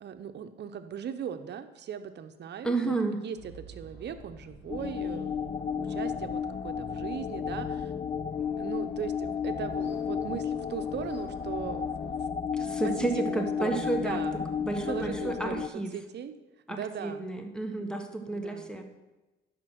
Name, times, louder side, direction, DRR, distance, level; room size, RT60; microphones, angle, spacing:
voice 1, 0.0-3.0 3.2-5.5 5.8-7.9 8.6-12.2 12.8-14.4 14.9-16.3 16.7-17.3 17.8-18.0 18.3-18.7, right 8 dB, 60° right, 9 dB, 0.9 m, -39 dB
voice 2, 2.6-3.2 12.5-14.2 14.6-15.9 16.7-18.8, right 3 dB, 5° left, 5 dB, 1.3 m, -31 dB
sound 1, 3.4-12.2, equal, 60° left, 3.2 m, -51 dB
sound 2, 4.7-15.7, left 7 dB, 25° left, 0.4 m, -33 dB
11.5 x 5.2 x 6.3 m, 1.1 s
cardioid pair, 90°, 20 cm